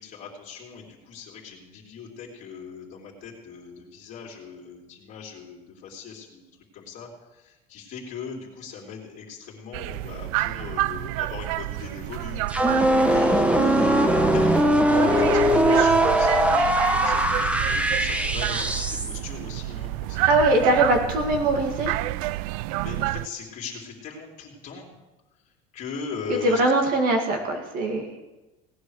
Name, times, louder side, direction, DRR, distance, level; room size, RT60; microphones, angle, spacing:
voice 1, 0.0-12.5 13.1-14.8 15.2-20.5 22.8-24.9 25.7-26.6, left 6 dB, 45° left, -2 dB, 3.0 m, -40 dB
sound 1, 9.7-23.3, right 17 dB, 80° right, 0.4 m, -29 dB
sound 2, 12.5-19.2, right 1 dB, 5° right, 1.0 m, -20 dB
voice 2, 20.3-22.0 26.3-28.2, right 2 dB, 50° right, 3 dB, 2.1 m, -22 dB
17.5 x 9.9 x 6.4 m, 1.1 s
cardioid pair, 145°, 18 cm